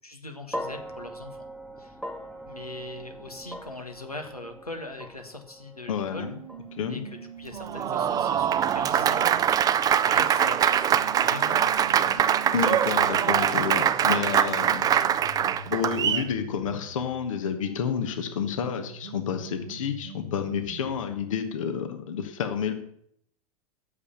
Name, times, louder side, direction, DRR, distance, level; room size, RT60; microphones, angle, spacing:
voice 1, 0.0-1.5 1.8-2.0 2.5-6.3 6.9-12.3, left 2 dB, 90° left, 5 dB, 1.3 m, -41 dB
sound 1, 0.5-8.8, equal, 5° left, 1.0 m, -41 dB
voice 2, 5.9-6.3 6.8-7.1 12.5-14.9 15.7-22.7, left 7 dB, 60° left, 8 dB, 1.2 m, -30 dB
sound 2, 6.1-9.4 10.1-17.1 17.6-21.1, right 4 dB, 75° right, 1.0 m, -43 dB
Applause, 7.6-16.3, right 9 dB, 20° right, 0.4 m, -23 dB
8.7 x 7.0 x 7.0 m, 0.69 s
figure-of-eight pair, 85°, 19 cm